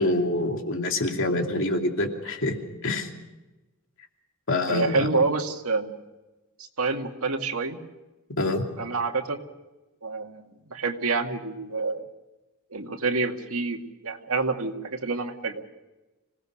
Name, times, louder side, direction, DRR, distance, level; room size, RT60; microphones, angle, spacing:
voice 1, 0.0-2.6 2.8-3.1 4.5-5.1 8.4-8.6, left 2 dB, 65° left, 3 dB, 2.7 m, -25 dB
voice 2, 4.7-6.0 6.6-7.8 8.8-9.4 10.0-12.0 12.7-15.7, right 3 dB, 75° right, 4 dB, 2.1 m, -28 dB
26.5 x 18.0 x 6.4 m, 1.1 s
head